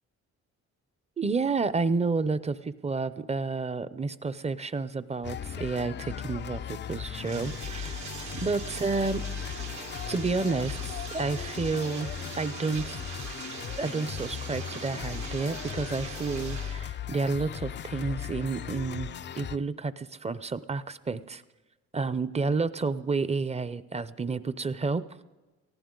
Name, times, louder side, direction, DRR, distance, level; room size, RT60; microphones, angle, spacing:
voice 1, 1.2-8.0 8.4-9.2 10.1-13.0 13.8-19.1 19.4-21.4 21.9-25.0, right 4 dB, 20° right, 15 dB, 0.6 m, -30 dB
sound 1, 5.2-19.6, left 9 dB, 40° left, 0.4 m, -37 dB
Bathtub (filling or washing), 7.1-16.8, right 7 dB, 70° right, 1.4 m, -42 dB
19.0 x 14.5 x 3.9 m, 1.2 s
cardioid pair, 90°, 30 cm